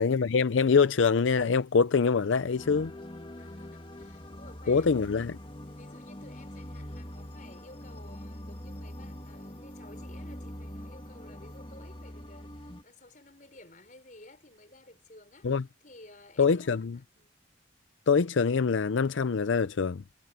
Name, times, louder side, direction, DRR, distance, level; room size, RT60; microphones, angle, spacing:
voice 1, 0.0-2.9 4.7-5.4 15.4-15.6 16.4-17.0 18.1-20.0, left 5 dB, 80° left, 0.5 m, -24 dB
sound 1, 2.6-12.8, left 1 dB, 25° left, 2.0 m, -43 dB
voice 2, 3.4-5.0 5.4-17.3, left 2 dB, 40° left, 5.9 m, -54 dB
head